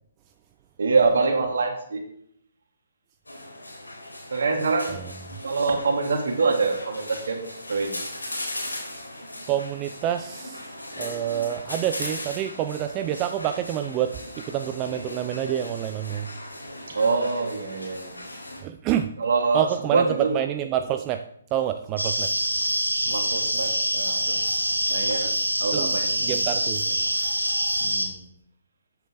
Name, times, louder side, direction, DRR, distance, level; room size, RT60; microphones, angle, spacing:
voice 1, 0.8-2.0 4.3-5.0 5.4-7.9 16.9-18.2 19.2-20.3 23.1-24.4 24.9-25.3 25.6-26.4 26.8-26.9 27.8-28.2, right 4 dB, 60° right, 3 dB, 2.6 m, -25 dB
sound 1, 3.3-18.6, left 1 dB, 80° left, 4.2 m, -38 dB
voice 2, 9.5-10.7 11.0-16.3 18.6-19.1 19.5-21.2 21.5-22.3 25.7-25.9 26.2-26.8, right 11 dB, 25° right, 8 dB, 0.5 m, -27 dB
sound 2, 22.0-28.1, right 1 dB, 85° right, 2.2 m, -25 dB
13.5 x 8.8 x 3.9 m, 0.70 s
figure-of-eight pair, 130°, 0 cm